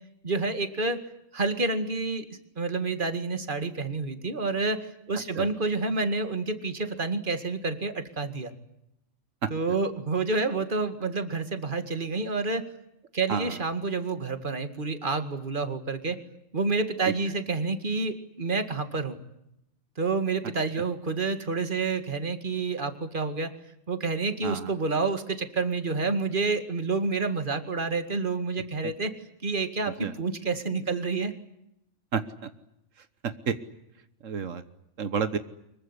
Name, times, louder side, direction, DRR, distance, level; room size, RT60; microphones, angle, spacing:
voice 1, 0.2-1.1 1.3-8.5 9.5-12.7 13.1-16.2 16.5-19.2 20.0-23.5 23.9-29.1 29.4-31.3, right 3 dB, 40° right, 9 dB, 2.3 m, -29 dB
voice 2, 24.4-24.7 30.0-30.1 32.1-32.2 33.2-33.5 34.2-34.6 35.0-35.4, right 6 dB, 85° right, 11 dB, 1.6 m, -29 dB
25.0 x 22.5 x 9.9 m, 0.82 s
omnidirectional pair, 1.3 m